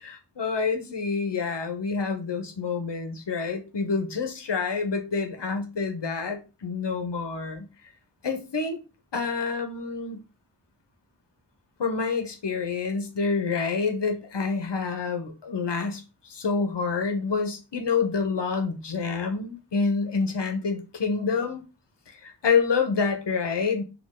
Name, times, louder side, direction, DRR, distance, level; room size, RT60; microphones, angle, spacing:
voice 1, 0.0-7.7 8.2-8.8 9.1-10.2 11.8-21.6 22.1-23.8, left 5 dB, 65° left, 1.0 m, -27 dB
4.4 x 2.7 x 3.7 m
cardioid pair, 40°, 45 cm